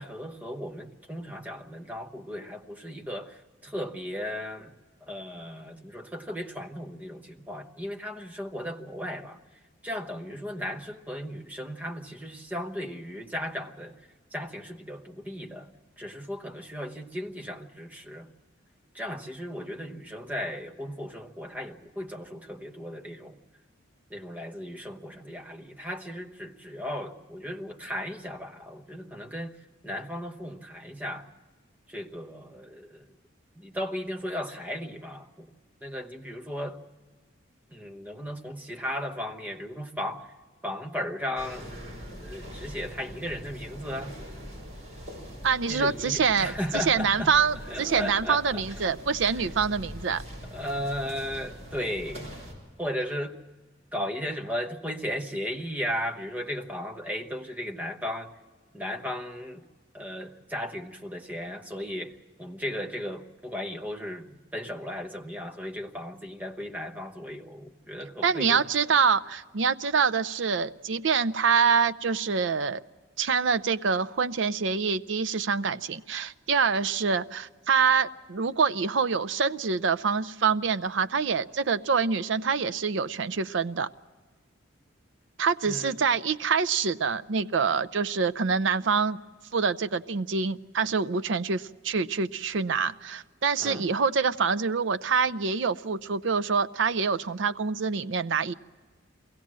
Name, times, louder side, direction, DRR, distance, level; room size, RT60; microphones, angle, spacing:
voice 1, 0.0-4.7 5.0-15.7 16.0-18.3 18.9-23.4 24.1-31.3 31.9-33.2 33.6-35.5 35.8-36.8 37.7-40.3 40.6-41.9 42.2-44.2 45.7-47.3 47.7-48.9 49.3-49.5 50.5-52.3 52.8-53.4 53.9-58.4 58.7-59.7 59.9-68.7 85.6-86.0 93.6-93.9, equal, 10° right, 1.0 m, -36 dB
sound 1, 41.4-52.5, equal, 35° right, 5.2 m, -42 dB
voice 2, 45.4-50.2 68.2-72.8 73.2-83.9 85.4-89.2 89.5-98.5, right 5 dB, 70° right, 0.5 m, -26 dB
23.0 x 16.5 x 7.5 m
head